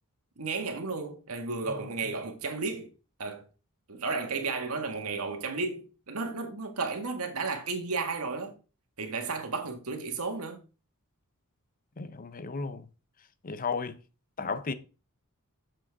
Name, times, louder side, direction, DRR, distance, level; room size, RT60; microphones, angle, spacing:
voice 1, 0.4-2.9 3.2-3.4 3.9-8.6 9.0-10.6, right 4 dB, 90° right, 1.8 m, -33 dB
voice 2, 12.0-12.9 13.4-14.0 14.4-14.7, left 4 dB, 40° left, 0.6 m, -34 dB
7.5 x 7.3 x 3.6 m
head